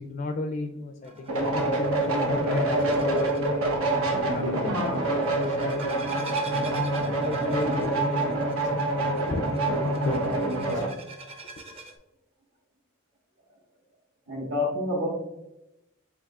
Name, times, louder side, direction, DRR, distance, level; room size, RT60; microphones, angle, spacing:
voice 1, 0.0-3.3 4.3-5.0 5.3-6.0 7.1-10.9 11.6-11.7, left 3 dB, 40° left, 5 dB, 0.4 m, -34 dB
sound 1, 1.0-12.0, right 2 dB, 30° right, 0.6 m, -46 dB
sound 2, 1.3-10.9, right 2 dB, 90° right, 0.9 m, -26 dB
voice 2, 4.3-4.8 14.3-15.1, left 2 dB, 65° right, -4 dB, 1.4 m, -29 dB
7.4 x 2.8 x 2.3 m, 0.89 s
head